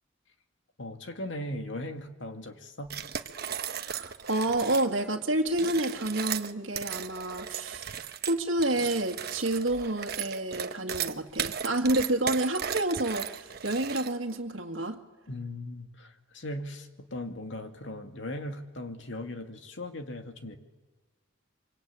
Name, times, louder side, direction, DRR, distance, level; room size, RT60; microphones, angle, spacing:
voice 1, 0.8-3.0 15.3-20.6, left 1 dB, 65° left, 6 dB, 2.4 m, -38 dB
sound 1, 2.9-4.9 5.5-14.4, right 8 dB, 55° right, 1.2 m, -36 dB
voice 2, 3.8-15.0, right 1 dB, 75° right, 2 dB, 2.0 m, -29 dB
25.0 x 25.0 x 8.9 m, 1.2 s
head